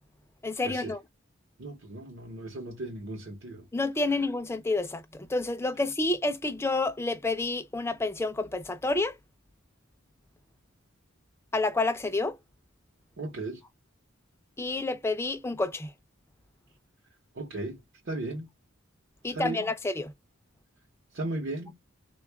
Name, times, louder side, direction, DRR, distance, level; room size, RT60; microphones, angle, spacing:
voice 1, 0.4-1.0 3.7-9.1 11.5-12.4 14.6-15.9 19.2-20.1, left 2 dB, 10° left, 0.4 m, -29 dB
voice 2, 1.6-3.6 13.2-13.6 17.4-17.8 18.1-18.5 19.3-19.7 21.1-21.8, right 2 dB, 55° right, 0.8 m, -36 dB
3.6 x 2.3 x 3.3 m
head